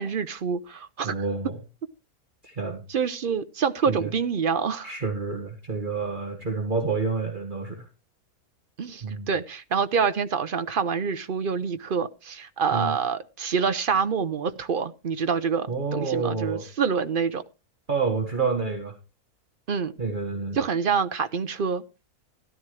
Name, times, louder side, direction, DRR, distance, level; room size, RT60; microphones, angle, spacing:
voice 1, 0.0-1.2 2.9-4.9 8.8-17.4 19.7-19.9 20.5-21.8, right 6 dB, 55° right, 0.6 m, -26 dB
voice 2, 1.0-1.6 2.4-2.8 3.9-4.1 4.8-7.8 9.0-9.3 12.7-13.0 15.7-16.6 17.9-18.9 20.0-20.6, right 4 dB, 35° right, 1.7 m, -28 dB
13.5 x 12.0 x 3.2 m
omnidirectional pair, 1.6 m